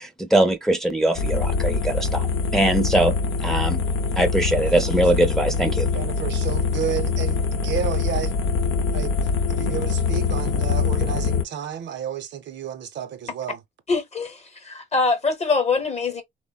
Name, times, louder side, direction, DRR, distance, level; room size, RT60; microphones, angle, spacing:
voice 1, 0.0-2.3 2.5-3.1 3.4-3.8 4.2-5.9, right 1 dB, ahead, 0.6 m, -21 dB
sound 1, 1.2-11.4, left 4 dB, 80° left, 0.6 m, -24 dB
voice 2, 5.9-8.3 8.9-9.2 9.5-13.6, right 8 dB, 65° right, 0.7 m, -31 dB
voice 3, 13.9-16.2, left 4 dB, 35° left, 0.9 m, -23 dB
3.3 x 2.1 x 2.3 m
cardioid pair, 90°, 20 cm